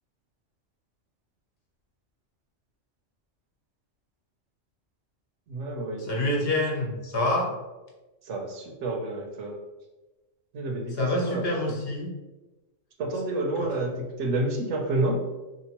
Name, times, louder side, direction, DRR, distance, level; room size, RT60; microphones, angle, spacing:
voice 1, 5.5-6.1 8.3-9.5 10.5-10.9 11.2-11.4 13.0-13.9 14.2-15.2, right 2 dB, 75° right, 2 dB, 1.0 m, -29 dB
voice 2, 6.0-7.5 10.9-12.1 13.6-13.7, left 1 dB, 60° left, -1 dB, 0.9 m, -27 dB
3.7 x 2.9 x 2.9 m, 1.1 s
omnidirectional pair, 1.3 m